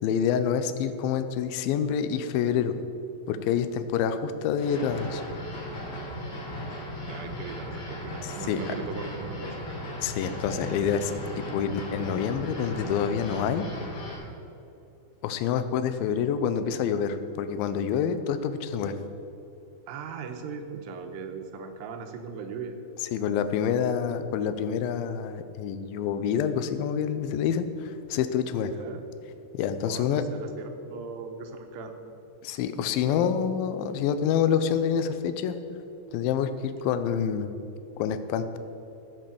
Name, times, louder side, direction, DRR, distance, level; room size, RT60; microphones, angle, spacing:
voice 1, 0.0-2.8 3.3-5.2 8.2-8.6 10.0-13.7 15.2-19.0 23.0-28.7 29.5-30.2 32.4-35.6 36.1-37.6 38.0-38.6, left 8 dB, 80° left, 10 dB, 2.2 m, -27 dB
sound 1, 4.6-14.2, equal, 45° left, 3.6 m, -37 dB
voice 2, 7.0-9.6 19.9-22.7 28.6-29.0 29.9-31.9, right 5 dB, 85° right, 6 dB, 3.0 m, -39 dB
15.0 x 5.5 x 6.9 m, 2.8 s
omnidirectional pair, 4.7 m